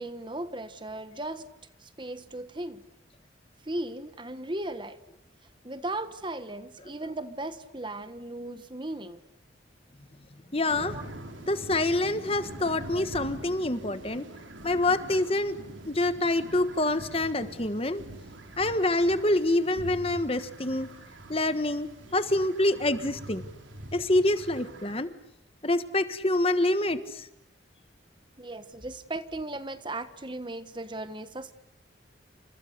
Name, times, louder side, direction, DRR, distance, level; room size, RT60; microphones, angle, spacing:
voice 1, 0.0-1.5 1.8-2.8 3.6-5.0 5.6-9.2 10.9-11.0 12.9-13.1 13.8-14.0 22.7-22.8 26.5-27.1 28.4-31.5, right 1 dB, 25° right, 11 dB, 1.4 m, -37 dB
voice 2, 10.5-11.0 11.5-14.2 14.6-15.6 15.8-18.0 18.6-20.9 21.3-23.4 23.9-25.1 25.6-27.0, left 1 dB, 30° left, 11 dB, 1.3 m, -26 dB
sound 1, 10.7-25.0, right 1 dB, 90° right, 3.6 m, -44 dB
30.0 x 27.5 x 6.7 m, 0.84 s
head